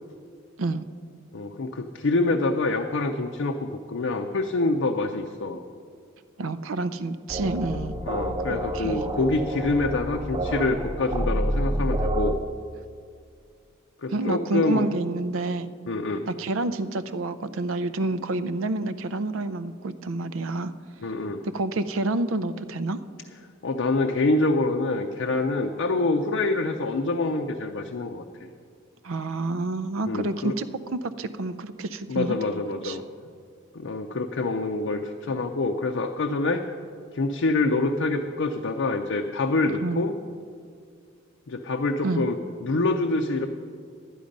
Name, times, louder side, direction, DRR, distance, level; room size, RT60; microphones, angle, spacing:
voice 1, 1.3-5.6 8.1-12.4 14.0-14.8 15.9-16.3 21.0-21.4 23.6-28.5 30.1-30.5 32.1-33.0 33.7-36.6 37.1-40.1 41.5-42.4 42.6-43.5, left 2 dB, 60° left, 3 dB, 0.5 m, -26 dB
voice 2, 6.4-7.9 8.5-9.1 14.1-15.7 16.3-20.7 21.4-23.0 29.0-32.4 32.8-33.0 39.8-40.0 42.0-42.2, right 2 dB, 70° right, 13 dB, 0.5 m, -28 dB
sound 1, 7.3-12.3, right 1 dB, 20° right, 0.5 m, -28 dB
11.5 x 10.0 x 5.2 m, 2.2 s
head